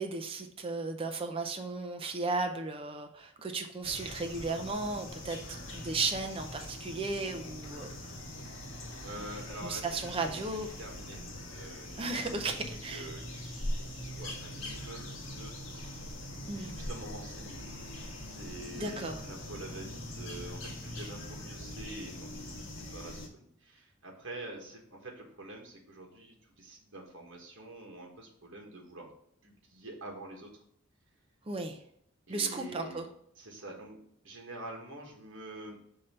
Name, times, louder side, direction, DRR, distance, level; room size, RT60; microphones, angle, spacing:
voice 1, 0.0-5.4 5.7-8.2 9.2-9.3 9.6-10.7 12.0-13.1 16.4-16.8 18.7-19.2 31.5-31.8 32.3-33.1, right 3 dB, 25° right, 4 dB, 0.5 m, -35 dB
sound 1, 3.8-23.3, left 1 dB, 70° left, 1.5 m, -42 dB
voice 2, 9.0-10.4 10.8-11.2 11.5-15.5 16.3-29.1 29.4-30.5 32.3-33.0 33.4-35.8, right 2 dB, 60° right, -1 dB, 1.5 m, -47 dB
5.5 x 3.3 x 5.4 m, 0.70 s
head